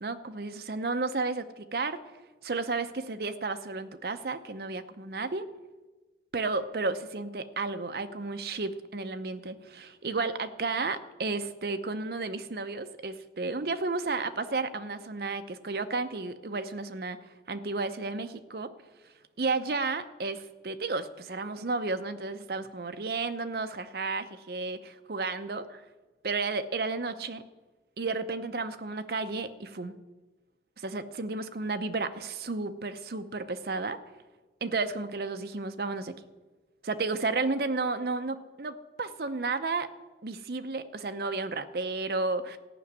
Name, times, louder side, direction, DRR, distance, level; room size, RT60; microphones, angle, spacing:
voice 1, 0.0-2.0 2.4-5.5 6.3-17.2 17.5-18.7 19.4-25.8 26.2-27.4 28.0-29.9 30.8-34.0 34.6-36.1 36.8-39.9 40.2-42.6, right 3 dB, 60° right, 10 dB, 0.7 m, -32 dB
14.0 x 6.0 x 9.4 m, 1.2 s
head